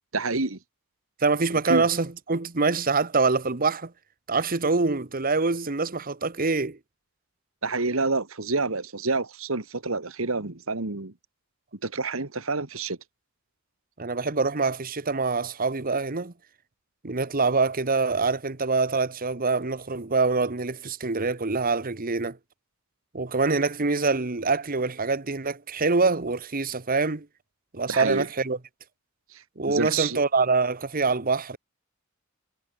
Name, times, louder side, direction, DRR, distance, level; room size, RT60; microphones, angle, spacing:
voice 1, 0.1-0.6 1.7-1.9 7.6-11.1 11.8-13.0 27.9-28.3 29.7-30.2, right 3 dB, 75° right, 2.1 m, -28 dB
voice 2, 1.2-3.9 4.3-6.8 14.0-16.3 17.0-22.4 23.1-27.3 27.7-28.6 29.6-31.6, right 4 dB, 45° right, 1.3 m, -25 dB
head